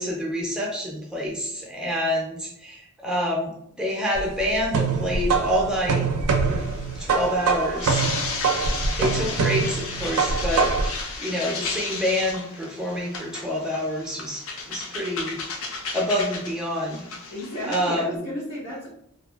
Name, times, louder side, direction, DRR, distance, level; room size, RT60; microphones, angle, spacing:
voice 1, 0.0-3.5 3.8-6.0 6.5-6.7 7.0-8.0 9.0-15.4 15.9-17.1 17.6-18.2, equal, 5° right, -3 dB, 0.4 m, -27 dB
sound 1, 4.1-11.0, right 5 dB, 80° right, 0.4 m, -24 dB
sound 2, 6.4-17.9, left 4 dB, 60° left, 0.4 m, -34 dB
voice 2, 17.3-18.9, equal, 85° left, -10 dB, 1.1 m, -32 dB
2.5 x 2.2 x 2.4 m, 0.72 s
head